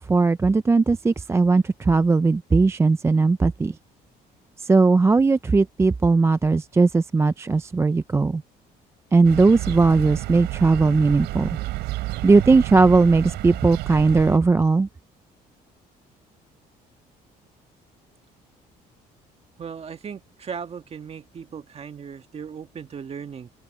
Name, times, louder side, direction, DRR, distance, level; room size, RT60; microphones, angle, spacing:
voice 1, 0.1-3.8 4.6-8.4 9.1-11.6 12.2-14.9, right 3 dB, 15° right, 0.4 m, -18 dB
sound 1, 9.2-14.4, right 18 dB, 90° right, 5.0 m, -30 dB
voice 2, 19.6-23.5, right 7 dB, 35° right, 1.9 m, -37 dB
open air
cardioid pair, 110°, 17 cm